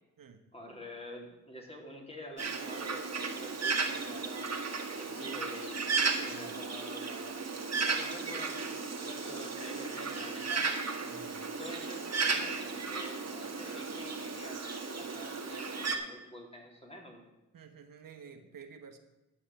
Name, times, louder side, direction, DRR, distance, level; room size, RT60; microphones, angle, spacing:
voice 1, 0.5-4.5 4.9-7.4 7.9-10.7 11.6-17.3, equal, 20° left, -1 dB, 3.6 m, -48 dB
Bird, 2.4-15.9, right 4 dB, 50° right, 1.7 m, -35 dB
voice 2, 6.1-6.6 10.9-11.5 17.5-19.0, right 6 dB, 80° right, 6 dB, 1.3 m, -51 dB
12.0 x 5.4 x 9.0 m, 1.0 s
cardioid pair, 55°, 33 cm